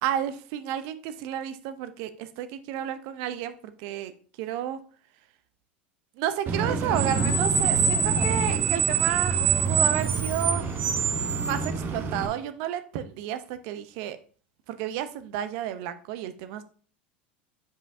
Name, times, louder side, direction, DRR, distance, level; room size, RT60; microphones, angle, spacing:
voice 1, 0.0-4.8 6.2-9.4 9.7-10.7 11.2-14.2 14.7-16.6, right 11 dB, 60° right, 11 dB, 0.7 m, -31 dB
Screech, 6.5-12.3, right 5 dB, 40° right, 1.0 m, -25 dB
7.4 x 5.3 x 2.7 m, 0.44 s
hypercardioid pair, 85°, 6 cm